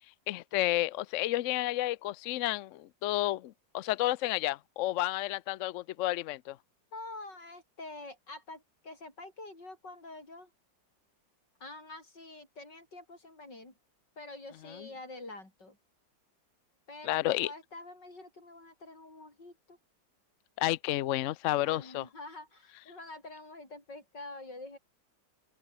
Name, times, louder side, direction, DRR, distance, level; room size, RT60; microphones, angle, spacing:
voice 1, 0.3-6.6 17.0-17.5 20.6-22.0, left 16 dB, 80° left, 0.6 m, -31 dB
voice 2, 6.9-10.5 11.6-13.7 14.2-15.8 16.9-19.8 21.6-24.8, left 2 dB, 65° left, 7.6 m, -47 dB
open air
omnidirectional pair, 2.0 m